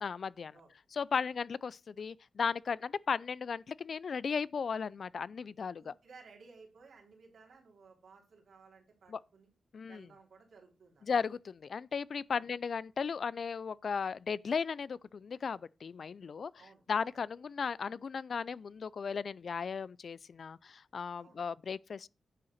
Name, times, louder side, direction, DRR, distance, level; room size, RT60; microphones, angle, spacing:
voice 1, 0.0-0.5 0.9-5.9 9.1-9.2 9.7-10.1 11.1-16.5 16.9-22.1, left 6 dB, 65° left, 0.3 m, -36 dB
voice 2, 5.8-9.5 9.9-11.1 12.3-12.5 16.6-16.8 21.2-21.4, right 4 dB, 80° right, 3.2 m, -58 dB
9.8 x 3.9 x 6.4 m
cardioid pair, 55°, 0 cm